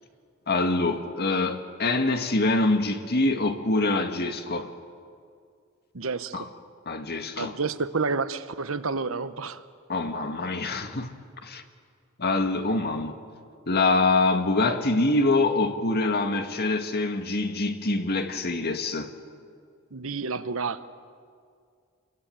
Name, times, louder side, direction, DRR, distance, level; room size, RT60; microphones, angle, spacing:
voice 1, 0.5-4.7 6.3-6.5 6.9-7.6 9.9-11.1 11.4-11.6 12.2-13.2 13.7-19.1, left 2 dB, 50° left, 1.9 m, -25 dB
voice 2, 5.9-6.5 7.4-9.6 19.9-20.9, right 4 dB, 70° right, 1.0 m, -30 dB
27.5 x 22.5 x 9.1 m
head